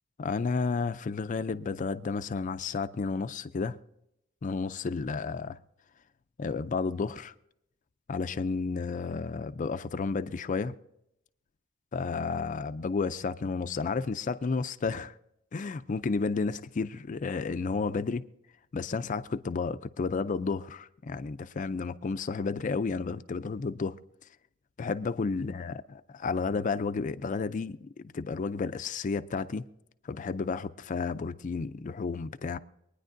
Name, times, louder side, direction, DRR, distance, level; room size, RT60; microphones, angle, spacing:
voice 1, 0.2-3.8 4.4-5.6 6.4-7.3 8.1-10.8 11.9-15.2 15.5-18.3 18.7-24.0 24.8-25.7 26.2-29.6 30.0-32.6, left 4 dB, 40° left, 0.4 m, -32 dB
24.0 x 9.8 x 2.6 m
head